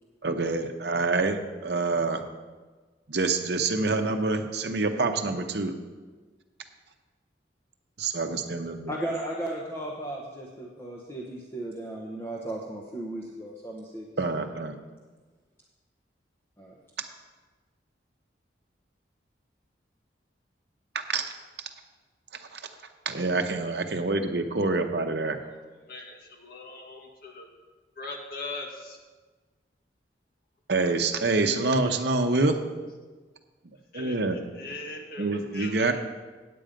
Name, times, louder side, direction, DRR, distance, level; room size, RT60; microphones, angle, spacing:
voice 1, 0.2-2.2 3.1-5.7 8.0-8.9 14.2-14.8 21.1-21.3 22.5-22.6 23.1-25.4 30.7-32.6 33.9-34.4 35.2-35.9, right 3 dB, 60° right, 6 dB, 0.8 m, -26 dB
voice 2, 8.9-14.6 16.6-16.8, right 1 dB, 15° left, -2 dB, 0.8 m, -36 dB
voice 3, 25.9-27.5 28.0-29.0 33.9-35.9, left 2 dB, 55° left, 1 dB, 1.6 m, -40 dB
8.8 x 8.5 x 5.1 m, 1.3 s
head